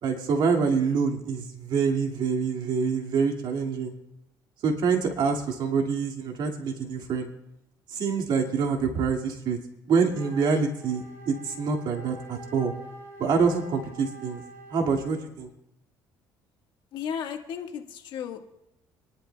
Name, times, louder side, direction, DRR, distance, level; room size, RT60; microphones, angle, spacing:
voice 1, 0.0-3.9 4.6-7.3 7.9-9.6 9.9-12.7 13.2-14.4 14.7-15.5, right 5 dB, 60° right, 3 dB, 2.0 m, -26 dB
Wind instrument woodwind instrument, 10.1-15.3, right 1 dB, 35° right, 4.8 m, -46 dB
voice 2, 16.9-18.4, left 8 dB, 65° left, 4 dB, 1.5 m, -34 dB
26.0 x 11.0 x 2.3 m, 0.85 s
cardioid pair, 110°, 9 cm